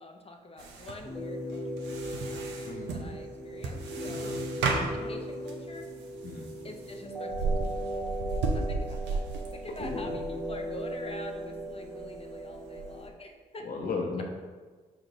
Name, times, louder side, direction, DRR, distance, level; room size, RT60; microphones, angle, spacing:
voice 1, 0.0-2.4 2.9-4.3 4.9-5.9 6.6-8.1 8.5-9.2 9.5-13.7, left 2 dB, 35° left, 4 dB, 0.6 m, -46 dB
sound 1, 0.6-13.1, right 3 dB, 80° right, 0.6 m, -36 dB
sound 2, 1.0-13.0, equal, 5° left, 1.0 m, -37 dB
voice 2, 2.6-3.0 4.1-4.4 6.2-6.6 9.8-10.1 13.6-14.2, left 4 dB, 55° left, 1 dB, 0.9 m, -35 dB
5.0 x 2.6 x 4.0 m, 1.4 s
supercardioid pair, 50°, 18 cm